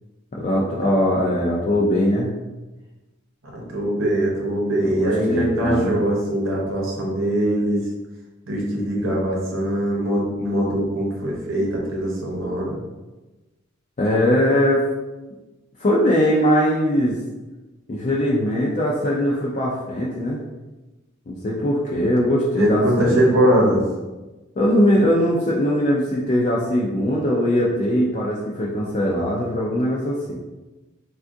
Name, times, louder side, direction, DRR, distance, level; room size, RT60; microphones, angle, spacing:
voice 1, 0.3-2.3 4.9-6.0 14.0-14.8 15.8-17.2 17.9-20.4 21.3-23.3 24.6-30.3, equal, 35° left, -5 dB, 0.4 m, -20 dB
voice 2, 3.5-7.8 8.5-12.8 22.6-23.8, right 1 dB, 85° right, -2 dB, 0.9 m, -22 dB
3.5 x 2.3 x 2.6 m, 1.1 s
head